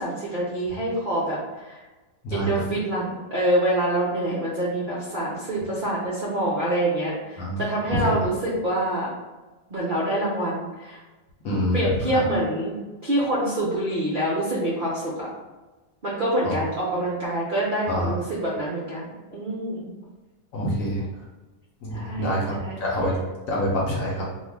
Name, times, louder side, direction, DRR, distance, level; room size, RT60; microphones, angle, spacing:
voice 1, 0.0-1.8 2.3-9.1 9.7-11.0 11.7-12.7 13.0-15.3 16.0-19.9 21.9-22.8, right 1 dB, 65° right, -7 dB, 0.5 m, -26 dB
voice 2, 11.4-11.9 12.1-12.2 16.4-16.6 17.9-18.1 20.5-21.1 21.8-23.2 23.5-24.3, equal, 65° left, -4 dB, 0.9 m, -26 dB
2.6 x 2.4 x 3.3 m, 1.2 s
omnidirectional pair, 1.9 m